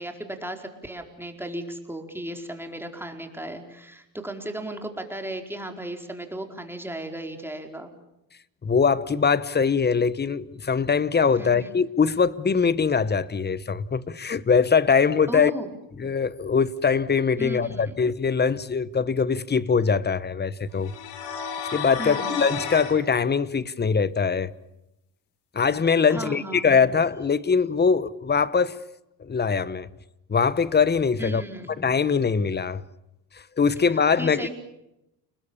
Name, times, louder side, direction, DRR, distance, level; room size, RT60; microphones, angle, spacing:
voice 1, 0.0-7.9 11.4-11.7 15.3-15.7 17.4-17.9 22.0-22.4 26.1-26.7 31.2-31.7 34.2-34.5, right 1 dB, 5° right, 4.6 m, -35 dB
voice 2, 8.6-15.5 16.0-20.9 21.7-24.5 25.5-28.8 29.2-29.9 30.3-31.4 31.8-32.8 33.6-34.5, left 5 dB, 25° left, 1.2 m, -22 dB
sound 1, 20.8-23.0, left 6 dB, 80° left, 4.8 m, -32 dB
30.0 x 20.5 x 7.1 m
supercardioid pair, 85°, 41 cm